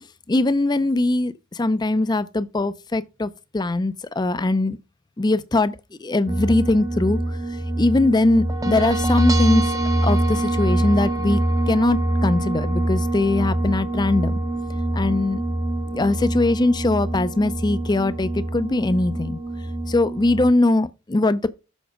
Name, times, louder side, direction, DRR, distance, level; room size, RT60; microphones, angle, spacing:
voice 1, 0.3-4.8 5.2-7.4 7.8-9.7 10.0-11.4 11.7-14.3 14.9-15.4 15.9-19.4 19.9-21.5, left 2 dB, 20° left, 0.5 m, -21 dB
sound 1, 6.3-20.5, right 1 dB, 15° right, 0.7 m, -24 dB
7.2 x 4.7 x 6.1 m
head